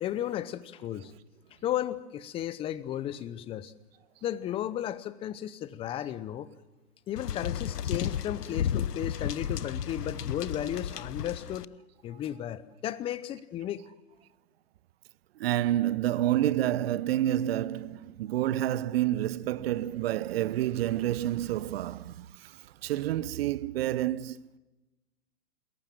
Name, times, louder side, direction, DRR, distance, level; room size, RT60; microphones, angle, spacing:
voice 1, 0.0-1.1 1.6-3.7 4.2-6.5 7.1-11.7 12.0-13.8, left 11 dB, 10° left, 0.7 m, -34 dB
sound 1, 7.2-11.6, left 9 dB, 80° left, 1.0 m, -33 dB
voice 2, 15.4-24.6, right 13 dB, 40° right, 0.9 m, -29 dB
28.0 x 21.5 x 7.6 m
hypercardioid pair, 130°, 46 cm